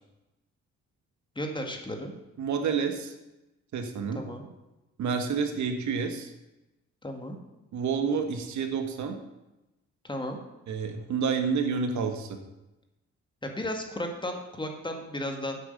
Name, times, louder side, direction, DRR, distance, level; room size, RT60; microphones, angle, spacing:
voice 1, 1.4-2.1 4.1-4.4 7.0-7.4 10.0-10.4 13.4-15.6, left 1 dB, 15° left, 3 dB, 1.9 m, -34 dB
voice 2, 2.4-3.1 3.7-4.2 5.0-6.3 7.7-9.2 10.7-12.4, right 5 dB, 70° right, 5 dB, 1.5 m, -29 dB
8.6 x 7.6 x 6.7 m, 0.99 s
cardioid pair, 90°, 30 cm